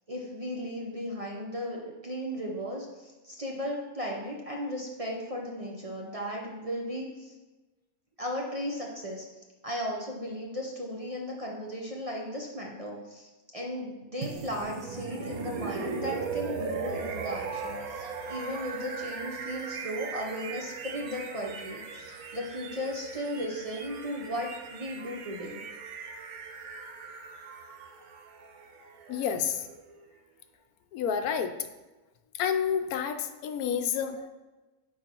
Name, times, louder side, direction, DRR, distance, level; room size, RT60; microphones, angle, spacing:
voice 1, 0.1-7.3 8.2-9.3 9.6-25.6, equal, 35° right, -1 dB, 0.6 m, -36 dB
sound 1, 14.2-30.1, right 5 dB, 80° right, 1.2 m, -39 dB
voice 2, 29.1-29.7 30.9-31.5 32.3-34.3, left 7 dB, 80° left, 8 dB, 1.1 m, -29 dB
9.0 x 4.7 x 2.9 m, 1.2 s
omnidirectional pair, 1.6 m